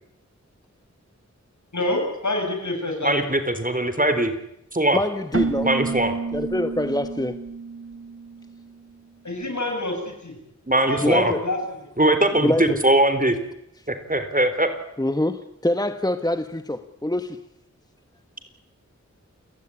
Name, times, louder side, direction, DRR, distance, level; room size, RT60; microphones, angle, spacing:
voice 1, 1.7-3.3 9.2-10.4 10.9-11.9, left 2 dB, 75° left, 3 dB, 7.6 m, -27 dB
voice 2, 3.0-4.3 4.7-5.0 5.6-6.1 10.7-11.3 12.0-13.4 13.9-14.7, right 1 dB, 30° right, 9 dB, 3.9 m, -20 dB
voice 3, 4.9-5.7 6.3-7.3 11.0-11.4 12.4-12.8 15.0-17.4, left 1 dB, 15° left, 10 dB, 1.3 m, -24 dB
Keyboard (musical), 5.3-9.0, right 4 dB, 45° right, 1.8 m, -30 dB
29.0 x 17.0 x 9.9 m, 0.79 s
wide cardioid pair, 65°, 29 cm